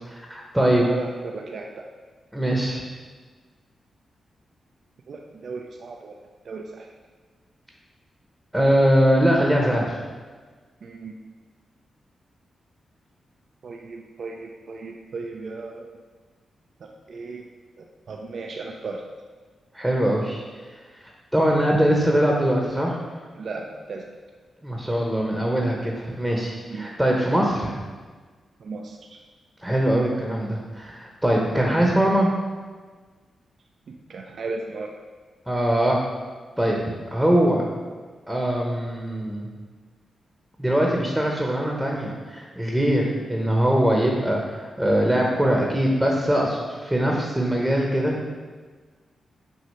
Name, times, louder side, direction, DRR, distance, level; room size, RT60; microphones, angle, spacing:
voice 1, 0.0-0.8 2.3-2.8 8.5-10.0 19.7-20.4 21.3-23.0 24.6-27.7 29.6-32.3 35.5-36.0 36.6-36.8 37.1-37.7 38.3-39.5 40.6-48.2, equal, 5° right, -1 dB, 0.9 m, -22 dB
voice 2, 0.8-1.9 5.1-6.2 6.4-6.9 10.8-11.2 13.6-16.0 16.8-17.5 17.8-19.0 23.4-24.0 26.7-26.9 28.6-29.2 33.9-34.9, right 3 dB, 65° right, 2 dB, 0.5 m, -35 dB
6.2 x 2.8 x 5.5 m, 1.4 s
cardioid pair, 80°, 0 cm